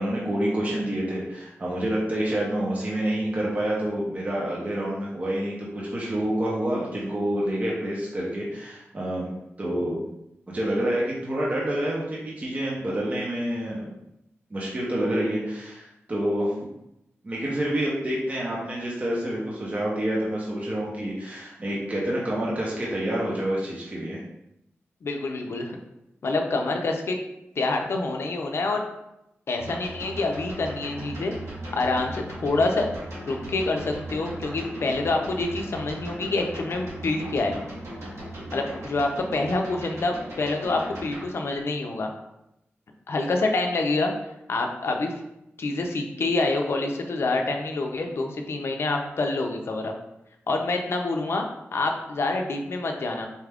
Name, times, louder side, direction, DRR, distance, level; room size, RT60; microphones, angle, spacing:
voice 1, 0.0-9.3 9.6-10.1 10.5-13.9 14.5-16.5 17.2-24.2, right 1 dB, 30° right, -5 dB, 0.7 m, -28 dB
voice 2, 25.0-25.7 26.2-27.2 27.6-28.8 29.5-31.3 31.7-32.9 33.3-37.6 38.5-42.1 43.1-44.1 44.5-45.1 45.6-49.9 50.5-51.4 51.7-53.3, left 2 dB, 65° left, 3 dB, 0.5 m, -26 dB
sound 1, 29.5-41.2, right 1 dB, 85° right, 1.2 m, -38 dB
4.2 x 2.3 x 3.4 m, 0.86 s
wide cardioid pair, 115°, 5 cm